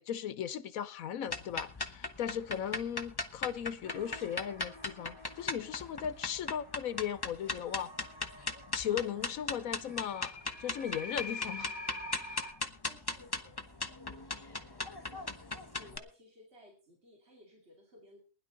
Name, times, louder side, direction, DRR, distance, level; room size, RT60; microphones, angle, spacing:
voice 1, 0.0-7.9 8.7-10.3 10.6-11.8 12.2-12.5, left 9 dB, 90° left, 1.3 m, -37 dB
sound 1, 1.3-16.0, left 3 dB, 20° left, 0.9 m, -38 dB
Cave Ghost, 3.8-12.5, left 2 dB, 20° right, 5.3 m, -47 dB
voice 2, 12.9-15.4 15.7-18.2, left 1 dB, 50° right, 3.0 m, -59 dB
19.5 x 11.0 x 3.9 m
omnidirectional pair, 1.4 m